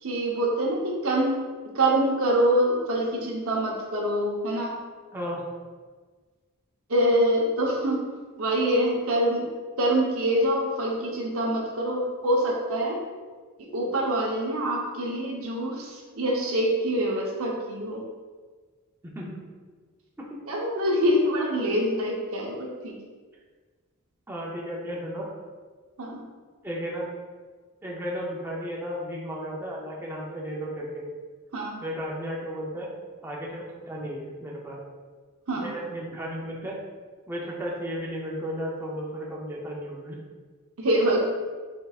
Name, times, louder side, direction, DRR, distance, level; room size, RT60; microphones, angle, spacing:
voice 1, 0.0-1.4 1.7-4.8 6.9-8.0 8.4-9.5 9.8-13.0 13.7-18.0 20.5-22.9 26.0-26.2 31.5-31.8 35.5-35.7 40.8-41.2, right 1 dB, 75° right, -1 dB, 0.9 m, -25 dB
voice 2, 5.1-5.4 19.0-19.4 20.2-20.4 24.3-25.3 26.6-27.1 27.8-31.1 31.8-32.9 33.2-34.8 35.6-36.8 37.3-40.2, equal, 10° right, -4 dB, 0.6 m, -34 dB
4.5 x 4.4 x 2.4 m, 1.5 s
head